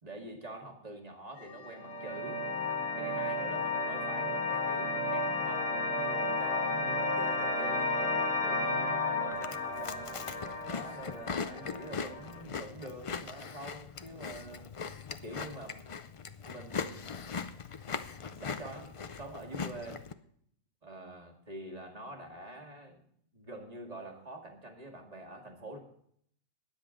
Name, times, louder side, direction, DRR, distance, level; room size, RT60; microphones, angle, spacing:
voice 1, 0.0-2.5 3.0-10.1 10.7-14.7 15.2-15.8 16.5-17.3 18.4-20.0 20.8-23.0 23.3-25.8, right 1 dB, 30° right, 1 dB, 2.1 m, -46 dB
sound 1, 1.4-12.4, left 2 dB, 70° left, 2.1 m, -33 dB
Chewing mastication, 9.3-20.1, left 5 dB, 55° left, 0.3 m, -40 dB
20.0 x 7.8 x 3.8 m, 0.66 s
omnidirectional pair, 1.3 m